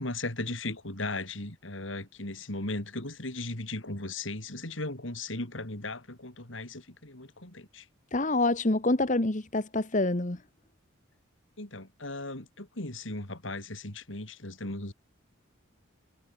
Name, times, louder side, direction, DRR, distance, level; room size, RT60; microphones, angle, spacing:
voice 1, 0.0-7.9 11.6-14.9, left 2 dB, 70° left, 4.1 m, -37 dB
voice 2, 8.1-10.4, left 2 dB, 40° left, 1.3 m, -26 dB
head